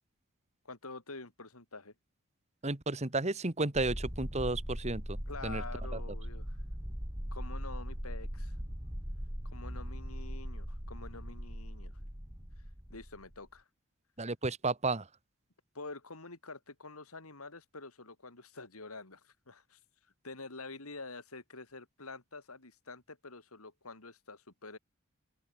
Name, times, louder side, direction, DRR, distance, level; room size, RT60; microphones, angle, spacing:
voice 1, 0.6-1.9 5.3-6.6 7.3-8.6 9.4-11.9 12.9-13.6 15.7-19.8 20.2-24.8, left 3 dB, 85° left, 4.1 m, -47 dB
voice 2, 2.6-5.2 5.4-5.6 5.9-6.0 14.2-15.1, right 2 dB, 30° right, 1.8 m, -32 dB
sound 1, 3.7-13.4, equal, 15° right, 3.3 m, -40 dB
open air
head